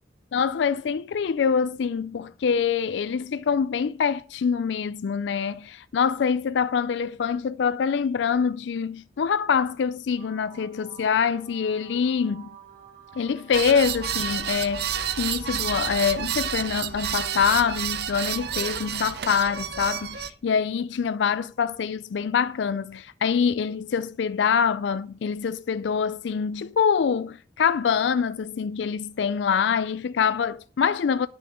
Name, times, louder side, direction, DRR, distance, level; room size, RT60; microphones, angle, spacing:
voice 1, 0.3-12.5 13.2-31.3, left 6 dB, 70° left, 0.4 m, -25 dB
sound 1, 10.1-20.1, right 8 dB, 40° right, 5.8 m, -50 dB
sound 2, 13.5-20.3, right 9 dB, 60° right, 0.7 m, -30 dB
9.3 x 6.4 x 6.1 m
head